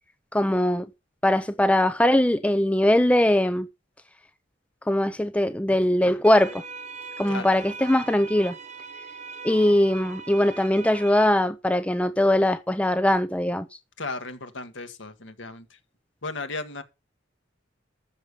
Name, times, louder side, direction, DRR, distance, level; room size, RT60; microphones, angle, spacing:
voice 1, 0.3-0.9 1.2-3.7 4.9-6.6 7.2-8.6 9.4-13.7, left 1 dB, 5° left, 0.5 m, -21 dB
sound 1, 6.2-11.3, right 4 dB, 35° right, 1.1 m, -40 dB
voice 2, 14.0-15.8 16.2-16.8, left 3 dB, 65° left, 1.7 m, -35 dB
13.5 x 6.9 x 5.3 m
head